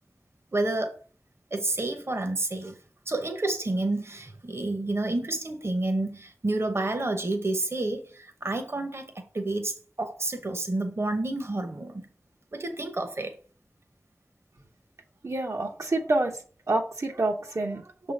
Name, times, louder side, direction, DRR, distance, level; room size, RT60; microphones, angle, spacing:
voice 1, 0.5-1.0 1.5-2.8 3.1-12.1 12.5-13.3, right 2 dB, 55° right, 0.9 m, -29 dB
voice 2, 15.2-16.4 16.7-18.1, right 2 dB, 85° right, 1.0 m, -27 dB
6.4 x 3.8 x 5.2 m
wide cardioid pair, 50°, 5 cm